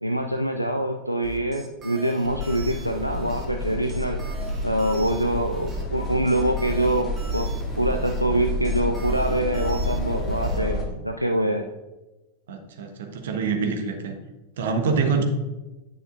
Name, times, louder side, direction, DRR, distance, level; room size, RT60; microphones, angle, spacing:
voice 1, 0.0-4.2 4.6-7.5 7.8-11.7, right 1 dB, 90° right, 4 dB, 0.4 m, -25 dB
sound 1, 1.2-10.6, right 3 dB, 25° right, 1.1 m, -41 dB
sound 2, 2.2-10.8, left 1 dB, 15° left, 2.2 m, -29 dB
voice 2, 10.5-11.0 12.5-14.1 14.6-15.2, right 5 dB, 60° right, 4 dB, 1.1 m, -26 dB
10.0 x 6.4 x 2.5 m, 1.1 s
figure-of-eight pair, 90°, 0 cm